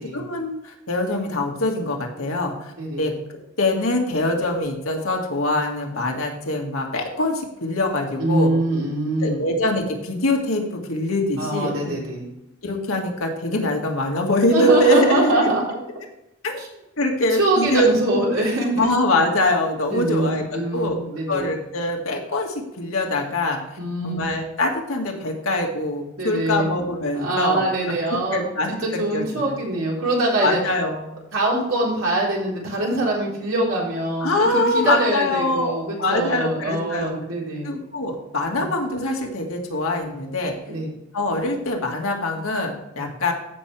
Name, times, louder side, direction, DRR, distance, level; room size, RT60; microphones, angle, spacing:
voice 1, 0.0-2.7 3.0-3.1 3.6-8.5 9.2-12.0 12.6-15.5 16.4-16.6 17.0-18.2 18.8-21.0 21.3-23.6 24.0-27.7 28.1-29.5 30.4-31.1 34.2-37.1 37.6-40.5 41.1-43.3, left 1 dB, 85° left, 1 dB, 2.0 m, -23 dB
voice 2, 2.8-3.1 8.2-9.4 11.4-12.3 14.5-15.6 16.6-16.7 17.4-18.9 19.9-21.5 23.8-24.2 26.2-26.7 27.1-28.4 28.7-30.6 31.3-37.7 38.6-38.7 40.7-40.9 43.0-43.1, right 2 dB, 70° right, -4 dB, 4.1 m, -24 dB
15.0 x 5.9 x 3.4 m, 0.86 s
head